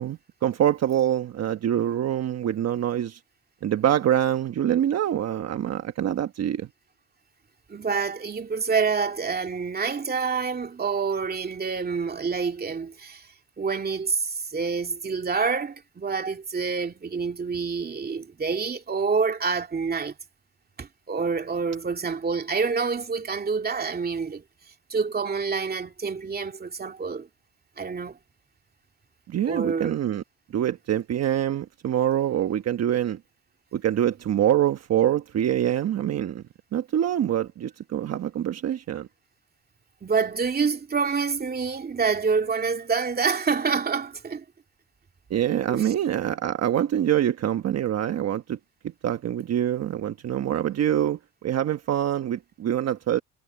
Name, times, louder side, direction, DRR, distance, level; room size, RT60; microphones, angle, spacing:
voice 1, 0.0-3.2 3.6-6.7 29.3-30.2 30.5-33.2 33.7-36.4 36.7-39.1 45.3-48.6 49.0-53.2, right 11 dB, 50° right, 1.2 m, -25 dB
voice 2, 7.7-13.3 13.6-20.1 20.8-24.4 24.9-27.3 27.8-28.2 29.5-29.9 40.0-44.4 45.7-45.9, right 5 dB, 30° right, 2.6 m, -27 dB
cardioid pair, 100°, 32 cm